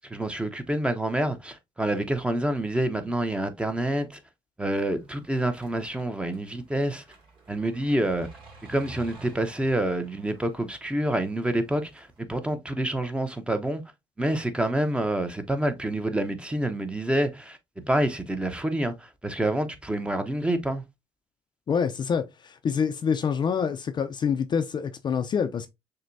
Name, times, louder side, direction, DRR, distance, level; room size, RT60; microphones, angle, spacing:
voice 1, 0.1-4.2 4.6-7.0 7.5-8.3 8.7-13.8 14.2-20.8, right 1 dB, 10° right, 0.7 m, -27 dB
sound 1, 4.7-12.2, right 3 dB, 45° right, 2.3 m, -51 dB
voice 2, 21.7-25.7, left 6 dB, 40° left, 0.5 m, -26 dB
6.5 x 2.2 x 2.6 m
supercardioid pair, 80°, 12 cm